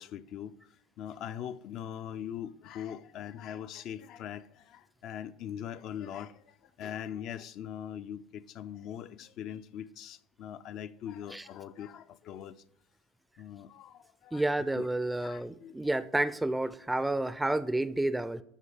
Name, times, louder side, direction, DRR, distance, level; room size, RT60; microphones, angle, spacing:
voice 1, 0.0-12.6 13.4-14.5 14.7-14.9 15.2-16.0, left 9 dB, 50° left, 0.4 m, -42 dB
voice 2, 14.3-18.4, right 2 dB, 10° right, 0.4 m, -30 dB
11.0 x 3.9 x 4.9 m
hypercardioid pair, 80°, 0 cm